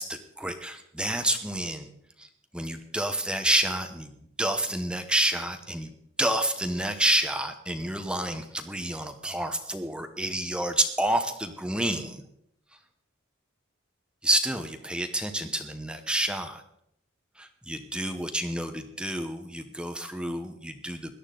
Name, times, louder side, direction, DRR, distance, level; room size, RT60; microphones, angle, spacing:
voice 1, 0.0-1.9 2.2-4.1 4.4-5.9 6.2-12.2 14.2-16.6 17.4-21.1, right 1 dB, 5° right, 7 dB, 0.8 m, -29 dB
17.0 x 12.0 x 3.8 m, 0.72 s
head